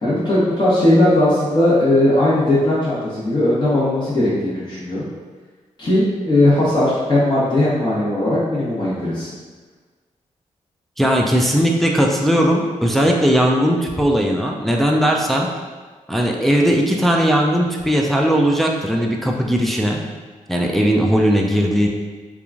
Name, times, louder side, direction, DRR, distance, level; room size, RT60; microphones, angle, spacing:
voice 1, 0.0-5.1 5.8-9.3, left 1 dB, 35° left, -10 dB, 1.0 m, -18 dB
voice 2, 11.0-15.5 16.1-20.0 20.5-21.9, equal, ahead, 0 dB, 0.4 m, -18 dB
2.9 x 2.3 x 2.5 m, 1.4 s
supercardioid pair, 50°, 14 cm